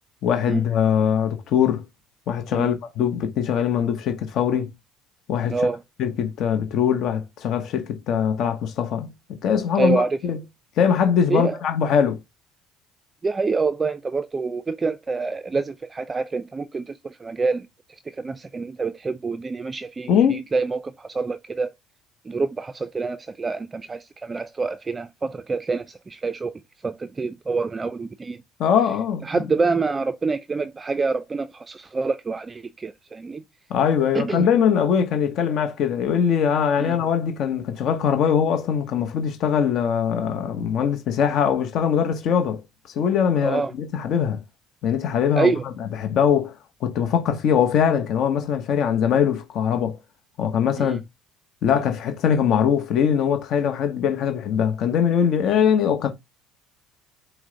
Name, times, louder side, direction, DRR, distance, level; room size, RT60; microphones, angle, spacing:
voice 1, 0.2-1.8 2.3-4.7 5.3-5.5 6.0-10.4 10.8-12.2 20.1-20.4 28.6-29.3 33.7-42.6 42.9-44.4 44.8-45.5 45.8-46.5 46.8-50.0 50.4-51.0 51.6-56.1, left 8 dB, 60° left, 0.8 m, -22 dB
voice 2, 5.5-5.8 9.8-10.2 11.3-11.6 13.2-21.7 22.3-26.5 26.8-28.4 29.2-33.4 34.1-34.5 36.8-37.0 43.4-43.7 45.4-45.6 50.8-51.0, right 4 dB, 25° right, 0.3 m, -26 dB
5.9 x 2.1 x 3.8 m
supercardioid pair, 85°, 0 cm